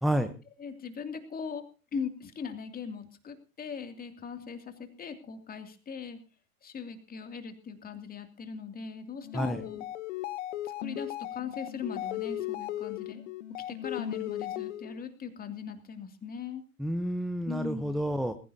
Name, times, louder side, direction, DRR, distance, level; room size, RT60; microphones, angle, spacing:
voice 1, 0.6-1.6 1.9-6.2 6.6-9.9 10.6-13.2 13.7-16.6 17.5-18.0, left 6 dB, 20° left, 6 dB, 2.6 m, -39 dB
sound 1, 9.2-15.0, left 13 dB, 55° left, 1.2 m, -37 dB
voice 2, 16.8-18.3, right 1 dB, ahead, 10 dB, 0.9 m, -29 dB
20.5 x 15.5 x 2.8 m, 0.35 s
hypercardioid pair, 100°, 43 cm